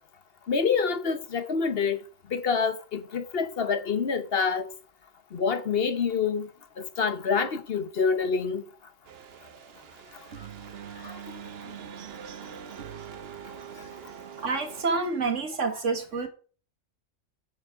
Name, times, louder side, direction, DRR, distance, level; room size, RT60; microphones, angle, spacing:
voice 1, 0.5-2.0 2.3-4.7 5.3-6.5 6.8-8.7 11.0-11.1, left 5 dB, 55° left, 1.1 m, -27 dB
sound 1, 9.0-14.8, right 8 dB, 60° right, 1.0 m, -43 dB
voice 2, 14.4-16.3, right 4 dB, 80° right, 1.9 m, -28 dB
7.1 x 7.0 x 4.9 m
omnidirectional pair, 1.3 m